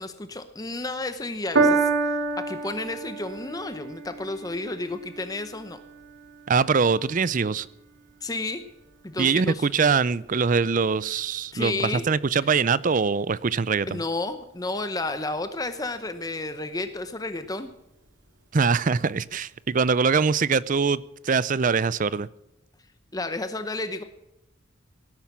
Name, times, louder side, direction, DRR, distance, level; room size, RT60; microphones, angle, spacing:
voice 1, 0.0-1.9 2.4-5.8 8.2-8.6 9.0-9.7 11.5-12.0 13.9-17.7 23.1-24.0, left 2 dB, 20° left, 0.8 m, -31 dB
Piano, 1.5-8.1 8.9-9.0, right 3 dB, 65° right, 2.6 m, -29 dB
voice 2, 6.5-7.7 9.2-14.0 18.5-22.3, right 5 dB, 40° right, 0.5 m, -23 dB
18.0 x 10.5 x 6.1 m
head